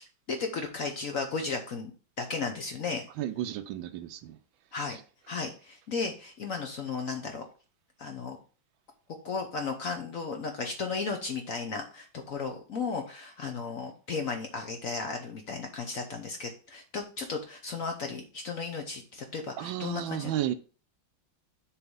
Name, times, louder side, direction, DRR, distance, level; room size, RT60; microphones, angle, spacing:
voice 1, 0.0-1.9 2.2-3.1 4.7-5.0 5.3-7.4 8.0-8.4 9.2-20.3, left 4 dB, 55° left, 1.0 m, -35 dB
voice 2, 3.2-4.4 4.9-5.0 19.6-20.5, right 12 dB, 80° right, 1.3 m, -33 dB
7.0 x 3.3 x 5.2 m
omnidirectional pair, 2.2 m